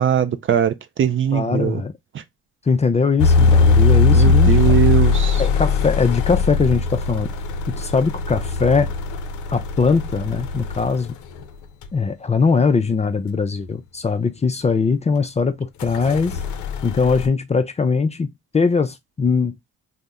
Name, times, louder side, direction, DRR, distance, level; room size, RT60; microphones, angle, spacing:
voice 1, 0.0-1.8 4.1-5.4, right 9 dB, 45° right, 0.4 m, -20 dB
voice 2, 1.3-1.9 2.7-4.8 5.4-7.3 7.7-8.9 9.5-11.2 11.9-16.4 16.8-19.6, left 4 dB, 20° left, 0.4 m, -20 dB
sound 1, 3.2-10.9 11.8-11.9 15.8-17.3, left 4 dB, 75° left, 0.5 m, -19 dB
2.7 x 2.0 x 3.5 m
cardioid pair, 90°, 30 cm